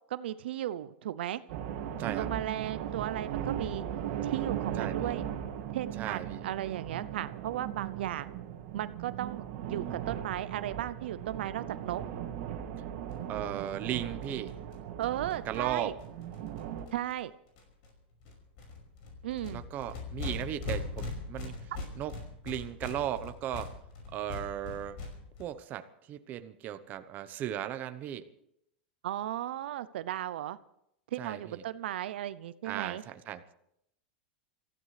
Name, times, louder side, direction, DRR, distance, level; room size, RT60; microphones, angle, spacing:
voice 1, 0.1-1.4 2.2-3.8 4.2-5.3 5.7-8.3 8.7-12.0 15.0-15.9 16.9-17.3 19.2-19.6 21.7-21.8 29.0-30.6 31.1-33.0, right 12 dB, 80° right, 14 dB, 0.6 m, -35 dB
sound 1, 1.5-16.8, right 10 dB, 60° right, 2.1 m, -38 dB
voice 2, 4.8-5.1 5.9-6.4 13.3-14.5 15.5-16.0 19.5-21.6 22.0-22.1 22.4-23.7 24.1-25.0 25.4-28.2 31.2-31.6 32.6-33.5, right 11 dB, 30° right, 10 dB, 1.0 m, -36 dB
sound 2, 13.1-13.2 13.4-13.5 13.7-13.8 14.0-17.2 17.6-17.9 18.2-25.4, left 3 dB, 55° left, 5.4 m, -41 dB
28.0 x 15.0 x 3.3 m, 0.76 s
supercardioid pair, 150°, 6 cm